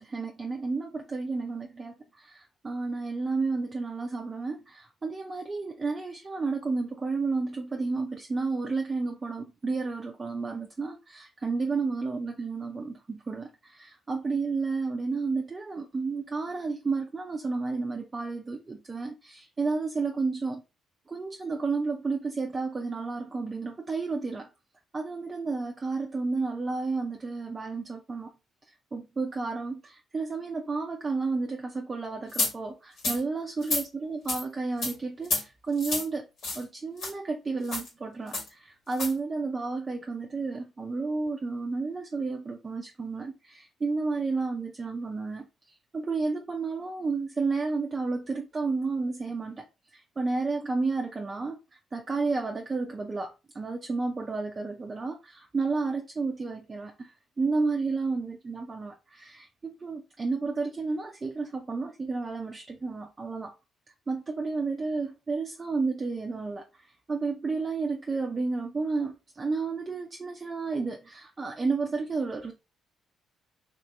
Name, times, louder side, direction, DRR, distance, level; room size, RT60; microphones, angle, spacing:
voice 1, 0.0-20.6 21.1-24.5 24.9-28.3 28.9-36.3 36.5-49.7 49.9-63.5 64.1-72.5, right 4 dB, 35° right, 0.5 m, -31 dB
sound 1, 32.3-32.5 33.0-33.2 33.6-33.8 34.3-34.4 34.8-34.9 35.2-35.4 35.8-36.0 36.4-36.6 37.0-37.1 37.6-37.9 38.3-38.5 38.9-39.1, left 2 dB, 65° left, 1.7 m, -29 dB
2.9 x 2.7 x 3.2 m
hypercardioid pair, 45°, 0 cm